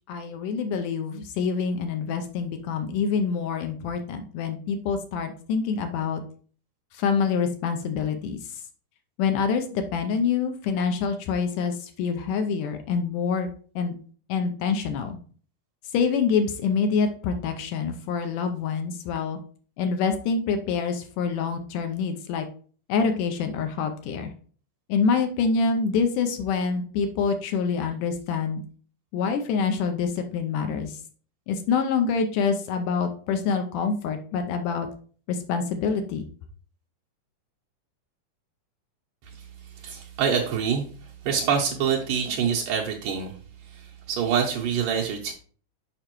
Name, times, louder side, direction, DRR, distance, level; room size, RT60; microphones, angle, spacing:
voice 1, 0.0-6.2 7.0-8.4 9.2-13.5 13.8-13.9 14.3-15.2 15.9-19.4 19.8-22.5 22.9-24.3 24.9-28.6 29.1-30.9 31.5-34.9 35.3-36.2, left 5 dB, 75° left, 6 dB, 2.1 m, -26 dB
voice 2, 39.2-45.3, right 7 dB, 75° right, -2 dB, 2.3 m, -27 dB
6.8 x 5.4 x 3.0 m, 0.43 s
omnidirectional pair, 3.9 m